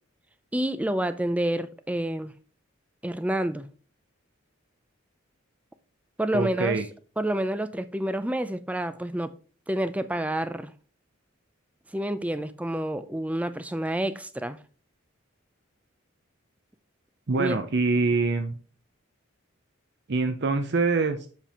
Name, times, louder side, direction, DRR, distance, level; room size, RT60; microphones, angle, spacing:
voice 1, 0.5-2.3 3.0-3.7 6.2-6.8 7.2-9.3 9.7-10.7 11.9-14.6 17.4-17.6, right 1 dB, 5° right, 0.4 m, -28 dB
voice 2, 6.3-6.9 17.3-18.5 20.1-21.3, right 3 dB, 55° right, 0.6 m, -24 dB
7.5 x 5.3 x 4.2 m
head